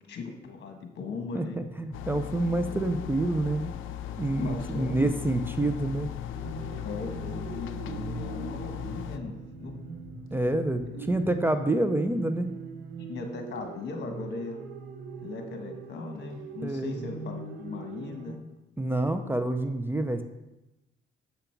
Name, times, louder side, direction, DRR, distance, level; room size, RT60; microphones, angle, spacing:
voice 1, 0.1-1.6 4.4-5.1 6.8-9.9 13.1-14.6 15.2-18.4, left 4 dB, 60° left, 4 dB, 1.3 m, -38 dB
voice 2, 1.3-3.7 4.2-6.1 10.3-12.5 16.6-17.0 18.8-20.2, right 2 dB, 10° right, 8 dB, 0.5 m, -27 dB
sound 1, 1.9-9.2, left 12 dB, 85° left, 0.5 m, -37 dB
sound 2, 3.9-11.6, left 3 dB, 20° left, 2.4 m, -49 dB
sound 3, 6.4-18.4, right 4 dB, 80° right, 0.9 m, -41 dB
7.0 x 5.1 x 4.5 m, 0.99 s
cardioid pair, 90°, 20 cm